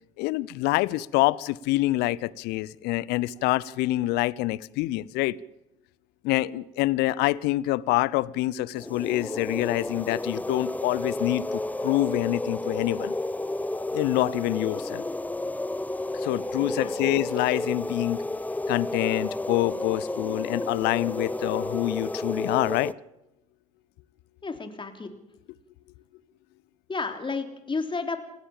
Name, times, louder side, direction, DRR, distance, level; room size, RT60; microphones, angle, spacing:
voice 1, 0.2-5.4 6.2-13.1 13.9-15.0 16.1-18.2 18.7-22.9, left 17 dB, 65° left, 22 dB, 0.7 m, -26 dB
sound 1, 8.7-22.9, left 2 dB, 10° left, 0.9 m, -31 dB
voice 2, 16.3-16.9 24.4-25.1 26.9-28.2, left 4 dB, 25° left, 6 dB, 3.5 m, -32 dB
28.0 x 16.0 x 7.2 m, 0.91 s
hypercardioid pair, 55°, 18 cm